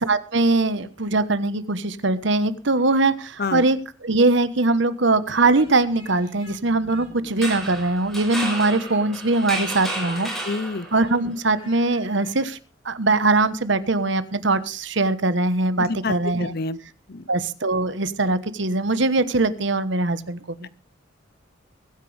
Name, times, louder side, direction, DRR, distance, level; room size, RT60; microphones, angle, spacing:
voice 1, 0.0-10.3 10.9-12.6 12.8-16.5 17.3-20.7, right 2 dB, 60° right, 13 dB, 1.2 m, -21 dB
Speech, 2.8-3.8 4.1-4.4 5.3-6.6 6.9-7.9 8.2-8.5 8.8-9.4 9.8-12.5, equal, 25° left, 6.3 m, -51 dB
sound 1, 5.3-8.4, right 1 dB, 45° right, 4.2 m, -47 dB
sound 2, 7.3-11.1, right 1 dB, ahead, 5.3 m, -32 dB
voice 2, 10.4-10.9 15.8-16.8 17.1-17.2 20.6-20.7, left 3 dB, 50° left, 17 dB, 0.7 m, -28 dB
22.5 x 10.5 x 3.4 m, 0.34 s
head